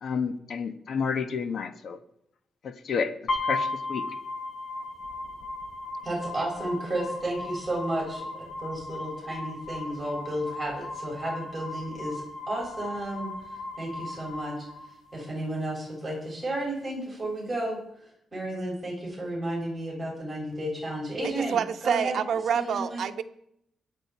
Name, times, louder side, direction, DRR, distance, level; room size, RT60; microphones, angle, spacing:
voice 1, 0.0-2.0 2.6-3.1 3.5-4.1, left 6 dB, 60° left, 10 dB, 1.1 m, -30 dB
sound 1, 3.3-15.3, left 2 dB, 75° left, 7.3 m, -36 dB
voice 2, 6.0-14.7 15.1-21.6 21.8-22.2 22.5-23.0, right 1 dB, 15° right, -3 dB, 6.9 m, -33 dB
voice 3, 21.2-23.2, right 8 dB, 70° right, 9 dB, 1.0 m, -28 dB
23.0 x 9.0 x 4.7 m, 0.76 s
cardioid pair, 130°, 0 cm